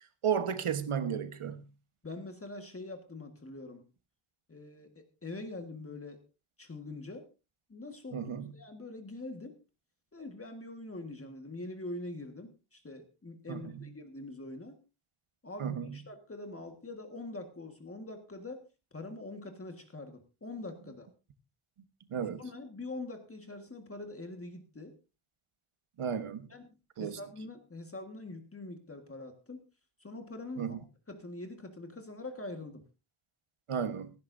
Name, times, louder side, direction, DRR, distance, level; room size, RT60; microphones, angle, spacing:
voice 1, 0.2-1.6 8.1-8.5 13.5-13.9 15.6-15.9 22.1-22.4 26.0-26.5 27.0-27.2 30.6-30.8 33.7-34.1, right 7 dB, 80° right, 1.4 m, -33 dB
voice 2, 2.0-3.9 4.5-6.2 6.6-7.3 7.7-9.6 10.1-14.8 15.4-18.6 18.9-21.1 22.4-24.9 26.5-26.7 27.0-29.6 30.0-30.8 31.1-32.8, left 2 dB, 25° left, 1.7 m, -44 dB
17.5 x 15.0 x 2.7 m
wide cardioid pair, 180°, 49 cm